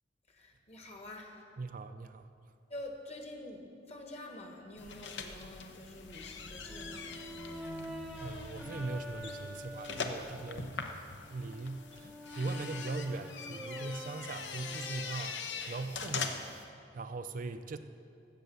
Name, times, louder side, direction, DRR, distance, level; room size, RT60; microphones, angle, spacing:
voice 1, 0.3-1.4 2.7-7.2, left 1 dB, 35° left, 3 dB, 1.5 m, -47 dB
voice 2, 1.6-2.3 8.2-11.0 11.3-16.7 16.9-17.8, right 3 dB, 45° right, 9 dB, 0.4 m, -40 dB
sound 1, 4.8-16.6, left 4 dB, 75° left, 0.9 m, -42 dB
Brass instrument, 6.6-10.6 11.2-15.2, left 1 dB, ahead, 0.9 m, -46 dB
15.5 x 6.8 x 6.9 m, 2.5 s
head